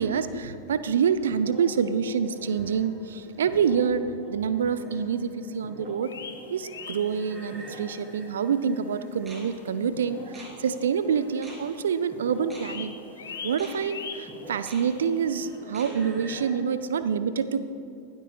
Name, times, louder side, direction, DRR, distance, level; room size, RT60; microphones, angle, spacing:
voice 1, 0.0-6.1 6.5-12.9 13.4-17.7, right 6 dB, 65° right, 13 dB, 0.4 m, -27 dB
sound 1, 0.7-16.5, right 1 dB, 15° right, 3.3 m, -45 dB
sound 2, 6.0-7.7 8.1-8.2 8.7-8.8 9.5-9.6 9.8-9.9 10.2-11.3 11.6-11.9 12.2-15.6, left 6 dB, 65° left, 1.1 m, -42 dB
20.0 x 12.5 x 2.4 m, 2.6 s
figure-of-eight pair, 90°, 0 cm